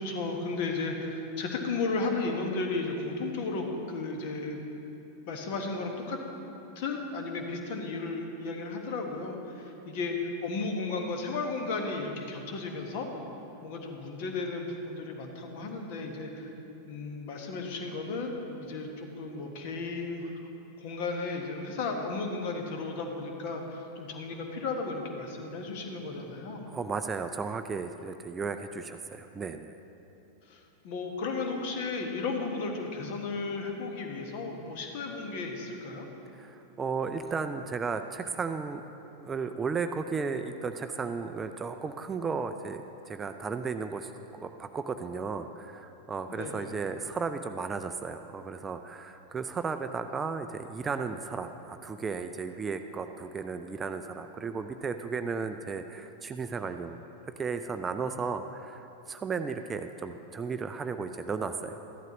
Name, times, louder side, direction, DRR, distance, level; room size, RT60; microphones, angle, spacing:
voice 1, 0.0-4.6 5.3-6.2 6.7-13.1 13.6-16.5 16.9-18.3 18.6-20.4 20.8-26.6 30.4-36.1 46.3-46.7 58.0-58.2, left 3 dB, 50° left, 3 dB, 1.4 m, -34 dB
voice 2, 26.7-29.8 36.3-44.1 44.4-57.0 57.4-61.8, right 5 dB, 20° right, 8 dB, 0.4 m, -34 dB
14.0 x 11.5 x 3.0 m, 3.0 s
figure-of-eight pair, 90°, 0 cm